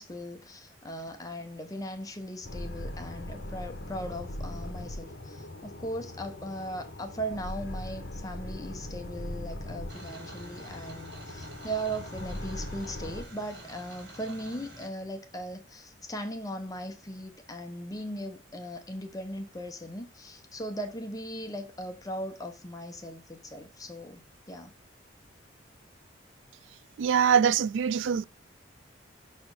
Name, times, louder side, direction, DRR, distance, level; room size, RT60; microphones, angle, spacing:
voice 1, 0.0-24.2 24.5-24.7, right 1 dB, 20° left, 0.7 m, -38 dB
sound 1, 2.4-13.2, left 1 dB, 70° left, 0.9 m, -40 dB
sound 2, 9.9-14.9, right 1 dB, 60° right, 3.2 m, -48 dB
voice 2, 27.0-28.2, right 7 dB, 85° right, 0.3 m, -23 dB
6.3 x 4.2 x 4.6 m
head